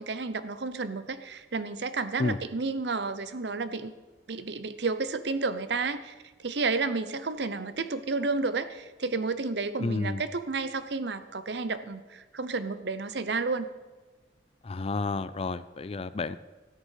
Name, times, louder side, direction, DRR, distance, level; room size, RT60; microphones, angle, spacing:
voice 1, 0.0-3.9 4.3-6.1 6.4-13.7, right 4 dB, 65° right, 12 dB, 0.8 m, -31 dB
voice 2, 9.8-10.2 14.6-16.4, left 3 dB, 30° left, 15 dB, 0.4 m, -30 dB
13.0 x 10.0 x 5.7 m, 1.3 s
head